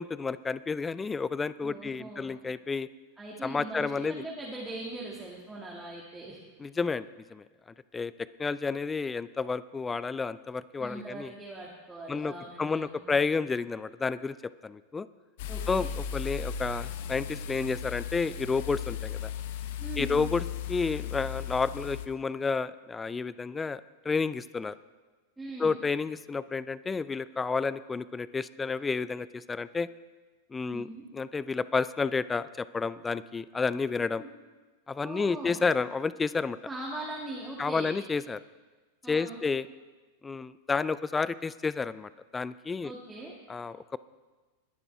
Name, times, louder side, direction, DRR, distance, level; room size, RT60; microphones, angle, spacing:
voice 1, 0.0-2.9 3.4-4.2 6.6-7.1 7.3-7.4 7.9-8.1 8.4-11.3 12.1-12.3 12.6-14.4 14.6-15.1 15.7-19.3 20.0-24.8 25.6-29.9 30.5-30.9 31.1-34.2 34.9-36.6 37.6-38.4 39.1-39.7 40.2-42.9 43.5-44.0, left 4 dB, 15° left, 17 dB, 0.4 m, -30 dB
voice 2, 1.6-2.4 3.2-6.4 10.8-13.1 15.5-15.9 19.8-20.2 25.4-25.8 30.7-31.0 34.2-34.3 35.0-35.6 36.6-37.9 39.0-39.4 42.8-43.3, right 2 dB, 5° right, -4 dB, 2.1 m, -41 dB
sound 1, 15.4-22.1, left 8 dB, 50° left, 0.8 m, -36 dB
20.5 x 11.0 x 3.6 m, 1.3 s
figure-of-eight pair, 90°, 0 cm